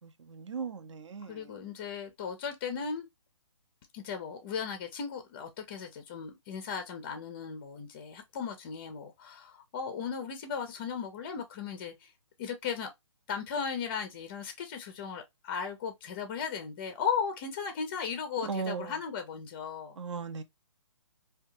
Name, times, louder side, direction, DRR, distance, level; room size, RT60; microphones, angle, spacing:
voice 1, 0.0-1.5 18.4-19.0 20.0-20.4, right 6 dB, 75° right, 0.6 m, -38 dB
voice 2, 1.3-3.1 3.9-12.1 12.4-12.9 13.3-20.0, left 6 dB, 25° left, 0.4 m, -36 dB
2.6 x 2.2 x 2.6 m
hypercardioid pair, 150°, 16 cm